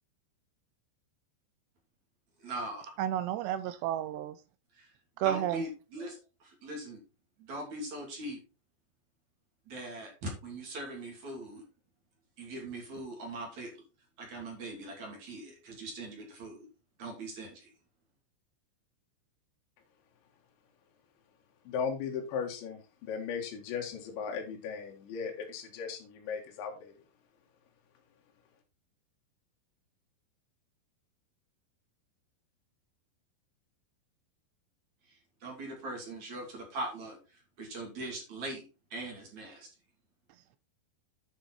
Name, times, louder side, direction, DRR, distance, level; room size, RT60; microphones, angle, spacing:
voice 1, 2.4-2.9 4.7-4.9 5.2-7.0 7.4-8.4 9.7-11.6 12.4-13.7 14.2-16.7 17.0-17.7 35.1-38.6 38.9-39.7, right 2 dB, 45° right, 0 dB, 3.7 m, -41 dB
voice 2, 3.0-4.4 5.2-5.6, right 12 dB, 80° right, 12 dB, 2.6 m, -31 dB
voice 3, 21.7-26.9, left 6 dB, 75° left, 1 dB, 4.0 m, -37 dB
9.7 x 6.3 x 4.3 m, 0.33 s
omnidirectional pair, 5.3 m